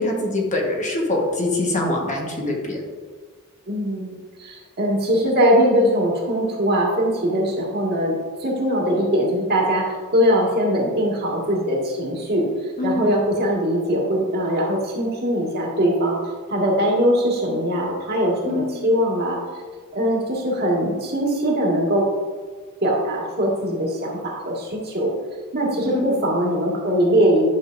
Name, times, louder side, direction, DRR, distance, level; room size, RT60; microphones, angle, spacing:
voice 1, 0.0-2.8 12.8-13.1 18.5-18.9 25.9-26.2, left 2 dB, 35° left, -1 dB, 1.3 m, -24 dB
voice 2, 3.7-12.5 12.8-16.2 16.5-19.4 19.9-22.1 22.8-25.1 25.5-27.5, equal, 45° right, -2 dB, 1.8 m, -21 dB
11.0 x 6.5 x 2.6 m, 1.5 s
head